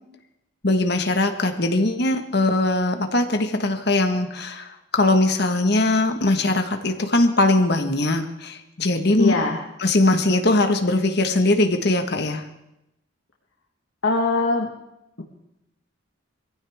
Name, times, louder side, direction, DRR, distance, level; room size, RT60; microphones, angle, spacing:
voice 1, 0.6-9.3 9.8-12.4, left 2 dB, 55° left, 5 dB, 1.5 m, -21 dB
voice 2, 9.2-9.6 14.0-14.7, left 3 dB, 70° left, 0 dB, 1.6 m, -21 dB
23.0 x 15.0 x 3.6 m, 0.88 s
head